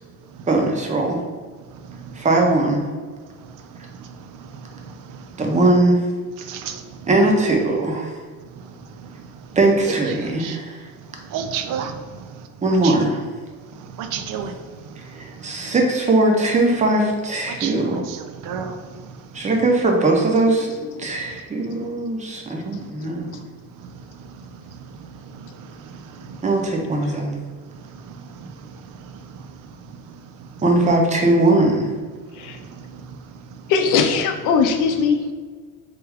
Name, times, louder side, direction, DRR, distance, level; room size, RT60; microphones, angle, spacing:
voice 1, 0.5-1.2 2.1-2.8 5.4-6.0 7.1-8.2 9.6-10.9 12.6-13.2 15.1-18.1 19.3-20.7 21.0-23.3 26.4-27.4 30.6-31.9, right 2 dB, 25° right, 1 dB, 0.5 m, -19 dB
voice 2, 11.3-11.9 12.8-13.0 14.0-14.5 17.5-18.2 18.4-18.7, right 8 dB, 75° right, 7 dB, 0.5 m, -29 dB
voice 3, 33.7-35.3, left 5 dB, 70° left, 5 dB, 0.5 m, -20 dB
3.3 x 2.3 x 3.4 m, 1.5 s
cardioid pair, 130°, 32 cm